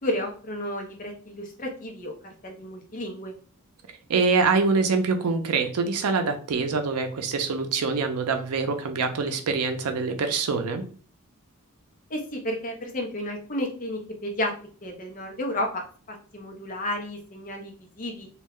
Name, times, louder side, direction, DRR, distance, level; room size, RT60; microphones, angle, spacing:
voice 1, 0.0-3.3 12.1-14.5 14.8-18.3, left 1 dB, 40° left, 2 dB, 0.7 m, -32 dB
voice 2, 4.1-10.8, right 4 dB, 80° right, 6 dB, 0.5 m, -25 dB
2.3 x 2.1 x 3.5 m, 0.41 s
head